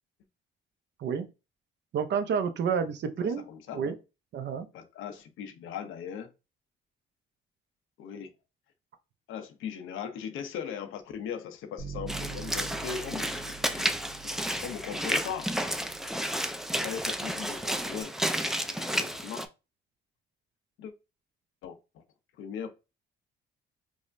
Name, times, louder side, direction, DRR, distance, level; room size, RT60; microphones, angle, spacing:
voice 1, 1.9-3.5 3.7-4.0 4.3-4.7, right 6 dB, 60° right, 0.7 m, -29 dB
voice 2, 3.2-3.8 4.7-6.3 8.0-8.3 9.3-13.9 14.2-15.5 16.8-18.1 18.7-19.5 20.8-20.9 21.6-22.0 22.4-22.7, left 7 dB, 85° left, 0.7 m, -39 dB
Bass guitar, 11.8-18.0, right 6 dB, 35° right, 1.0 m, -46 dB
Walk footsteps / Splash splatter, 12.1-19.5, equal, ahead, 0.4 m, -31 dB
4.7 x 2.1 x 2.6 m
cardioid pair, 90°, 20 cm